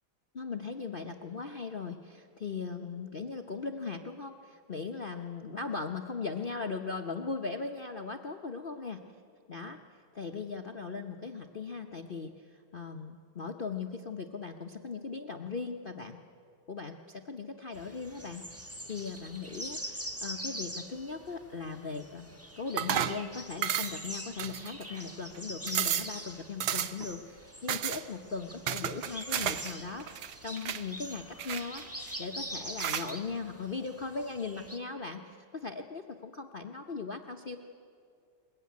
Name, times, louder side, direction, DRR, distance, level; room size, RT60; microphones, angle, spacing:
voice 1, 0.3-9.0 9.5-9.8 10.1-16.2 16.7-18.4 18.8-37.6, left 4 dB, 60° left, 3 dB, 0.5 m, -39 dB
sound 1, 17.7-34.8, equal, 10° right, 0.8 m, -44 dB
sound 2, 22.8-23.2 23.6-24.1 24.4-25.0 25.3-25.4 25.7-26.1 26.6-27.1 27.7-28.0 28.7-29.7 30.0-30.8 31.4-32.1 32.8-33.1, right 10 dB, 65° right, 1.1 m, -32 dB
21.0 x 20.5 x 9.5 m, 2.4 s
omnidirectional pair, 2.2 m